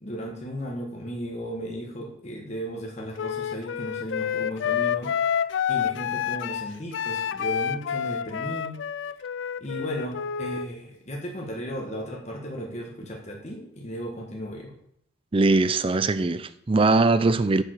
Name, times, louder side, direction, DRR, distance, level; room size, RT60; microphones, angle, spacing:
voice 1, 0.0-5.1 5.7-8.8 9.6-14.7, equal, 35° left, 1.4 m, -35 dB
Wind instrument woodwind instrument, 3.2-10.7, left 8 dB, 60° left, 0.3 m, -28 dB
voice 2, 15.3-17.6, right 3 dB, 25° right, 0.4 m, -21 dB
6.9 x 6.9 x 6.5 m
head